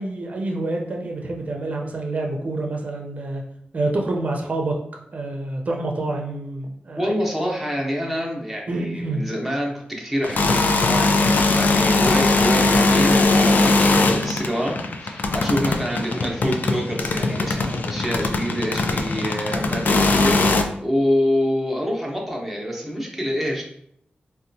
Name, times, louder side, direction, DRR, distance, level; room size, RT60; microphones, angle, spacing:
voice 1, 0.0-3.4 3.7-4.8 5.1-7.1 8.7-9.4, right 2 dB, 45° right, 1 dB, 0.6 m, -27 dB
voice 2, 7.0-23.6, equal, ahead, -2 dB, 0.8 m, -26 dB
sound 1, 10.2-20.6, left 3 dB, 55° left, 0.4 m, -20 dB
4.0 x 2.2 x 2.7 m, 0.70 s
wide cardioid pair, 115°, 4 cm